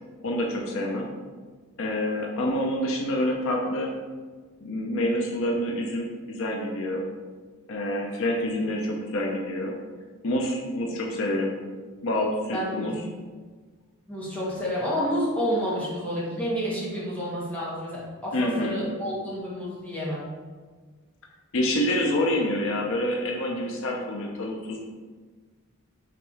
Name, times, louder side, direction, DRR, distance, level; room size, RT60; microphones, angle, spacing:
voice 1, 0.2-1.1 1.8-3.9 4.6-7.0 7.7-9.7 10.2-11.6 12.0-13.0 18.3-18.8 21.5-24.8, left 1 dB, 65° left, 0 dB, 0.8 m, -27 dB
voice 2, 12.5-13.0 14.1-20.3, equal, 5° left, -7 dB, 1.9 m, -29 dB
5.9 x 4.1 x 4.9 m, 1.4 s
head